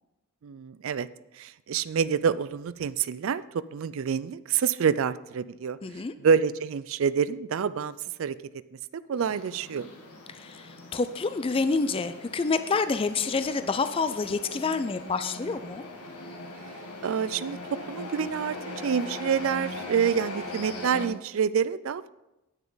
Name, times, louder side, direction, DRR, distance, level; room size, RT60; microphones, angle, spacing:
voice 1, 0.4-1.1 1.3-5.8 6.2-8.4 8.9-9.9 17.0-17.6 17.9-22.1, right 7 dB, 65° right, 16 dB, 0.4 m, -27 dB
voice 2, 5.8-6.1 10.3-15.8, left 4 dB, 25° left, 11 dB, 0.3 m, -28 dB
sound 1, 9.2-21.1, left 2 dB, 90° left, 1.7 m, -40 dB
9.4 x 9.0 x 3.9 m, 0.95 s
head